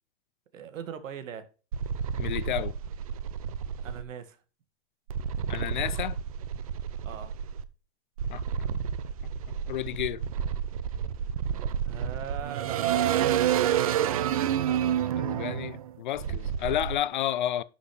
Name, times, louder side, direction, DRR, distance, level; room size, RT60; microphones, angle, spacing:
voice 1, 0.5-1.5 3.8-4.4 7.0-7.4 11.6-13.7, right 8 dB, 85° right, 2.0 m, -40 dB
sound 1, 1.7-4.0 5.1-7.6 8.2-17.0, right 9 dB, 30° right, 0.4 m, -29 dB
voice 2, 2.2-2.7 5.5-6.2 8.3-8.4 9.7-10.3 15.1-17.6, left 12 dB, 40° left, 0.5 m, -31 dB
11.0 x 6.4 x 3.3 m
supercardioid pair, 165°, 38 cm